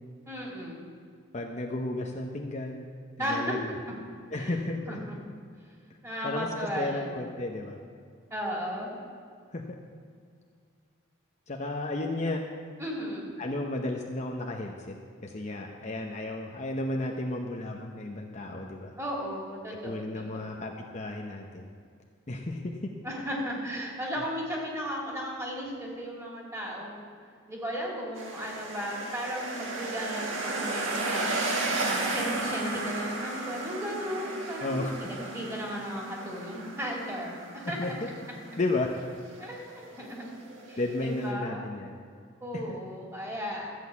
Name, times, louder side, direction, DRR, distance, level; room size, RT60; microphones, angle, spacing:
voice 1, 0.2-0.8 3.2-3.6 4.3-4.5 4.9-5.2 6.0-7.2 8.3-8.9 12.8-13.3 19.0-20.6 23.0-27.1 27.5-31.3 31.8-37.9 39.3-40.3 40.7-41.7 42.4-43.7, equal, 15° right, -3 dB, 2.7 m, -35 dB
voice 2, 1.3-2.8 3.2-3.7 4.3-5.0 6.2-6.5 6.7-7.8 9.5-9.8 11.5-12.4 13.4-14.9 15.2-19.0 19.8-21.7 22.3-22.9 34.6-35.1 37.6-38.1 38.6-38.9 40.8-41.9 42.5-42.8, left 2 dB, 35° left, 1 dB, 0.8 m, -33 dB
sound 1, 28.2-41.3, right 2 dB, 70° right, 1.7 m, -34 dB
13.5 x 6.4 x 8.3 m, 2.1 s
head